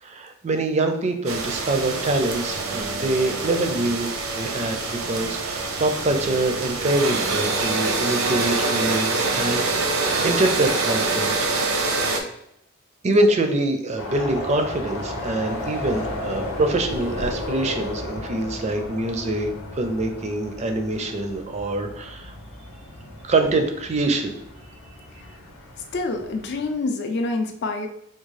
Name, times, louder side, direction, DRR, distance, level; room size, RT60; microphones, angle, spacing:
voice 1, 0.0-4.8 5.1-11.5 13.0-22.3 23.2-24.4, right 2 dB, 30° right, 5 dB, 0.4 m, -25 dB
sound 1, 1.3-12.2, right 3 dB, 80° right, 0.6 m, -25 dB
sound 2, 14.0-26.7, left 1 dB, 80° left, 0.8 m, -34 dB
voice 2, 25.9-27.9, left 3 dB, 50° left, 5 dB, 0.4 m, -26 dB
3.5 x 2.3 x 3.2 m, 0.74 s
head